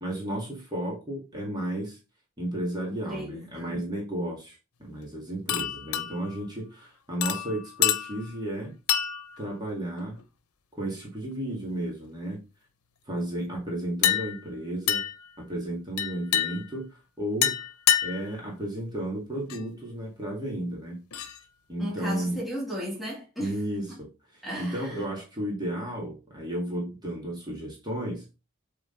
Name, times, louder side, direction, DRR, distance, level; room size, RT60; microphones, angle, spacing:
voice 1, 0.0-2.0 2.4-8.7 9.4-10.2 10.7-12.4 13.1-15.0 15.4-17.6 18.0-21.0 21.7-22.4 23.4-28.2, right 1 dB, 20° right, 2.2 m, -33 dB
voice 2, 2.9-3.8 21.8-23.8 24.4-25.0, equal, ahead, 2.3 m, -36 dB
sound 1, 5.5-6.4 7.2-8.4 8.9-9.4 10.0-10.2 14.0-14.5 14.9-15.3 16.0-16.8 17.4-18.4 19.5-19.6 21.1-21.4, left 11 dB, 85° left, 0.8 m, -27 dB
7.8 x 3.9 x 3.9 m
head